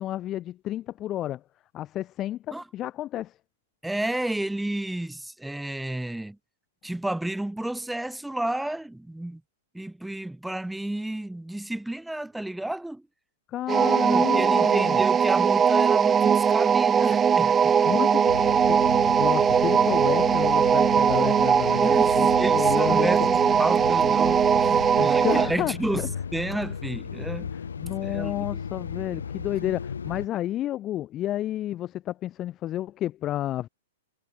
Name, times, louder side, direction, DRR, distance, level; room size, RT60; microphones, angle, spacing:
voice 1, 0.0-1.4 1.7-3.3 13.5-15.0 17.9-18.8 19.2-21.9 22.2-23.1 23.5-23.6 25.0-26.1 27.5-33.7, left 13 dB, 30° left, 0.6 m, -31 dB
voice 2, 3.8-6.4 6.8-9.4 9.7-13.0 14.1-17.7 21.8-26.1 26.3-27.5 28.0-28.6, right 1 dB, 5° right, 1.9 m, -31 dB
sound 1, 13.7-25.6, right 7 dB, 20° right, 0.6 m, -20 dB
sound 2, 18.3-30.3, left 6 dB, 90° left, 1.4 m, -35 dB
hypercardioid pair, 125°, 0 cm